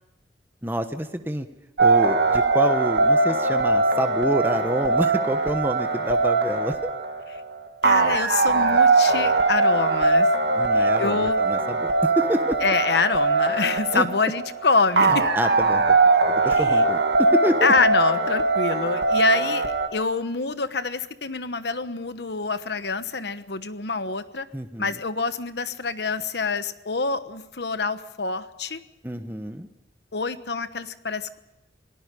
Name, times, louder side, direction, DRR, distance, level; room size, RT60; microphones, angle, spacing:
voice 1, 0.6-1.5 1.8-6.9 10.6-12.6 13.9-14.1 15.3-16.0 16.4-17.7 24.5-24.9 29.0-29.7, equal, 10° right, 7 dB, 1.1 m, -27 dB
sound 1, 1.8-19.9, right 3 dB, 70° right, 1.9 m, -21 dB
voice 2, 7.8-10.3 10.7-11.4 12.6-15.3 16.5-16.8 17.6-24.5 24.8-28.8 30.1-31.4, left 4 dB, 70° left, 11 dB, 1.2 m, -26 dB
28.0 x 18.5 x 5.2 m, 0.95 s
head